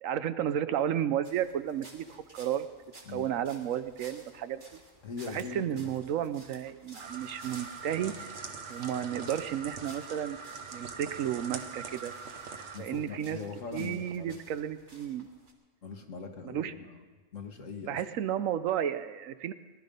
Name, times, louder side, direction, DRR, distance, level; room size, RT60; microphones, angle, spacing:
voice 1, 0.0-2.7 3.1-4.8 5.3-8.3 8.7-10.4 10.7-12.1 12.8-13.4 13.7-15.3 16.4-16.7 17.9-19.5, right 10 dB, 90° right, 12 dB, 1.1 m, -32 dB
sound 1, 1.2-15.5, right 2 dB, 40° right, 2.0 m, -55 dB
voice 2, 5.0-5.9 6.2-6.3 12.7-14.3 15.8-17.0 17.3-18.0, left 5 dB, 75° left, 5 dB, 1.7 m, -41 dB
sound 2, 7.0-12.8, right 5 dB, 65° right, 1.4 m, -42 dB
19.0 x 12.0 x 5.2 m, 1.4 s
omnidirectional pair, 1.3 m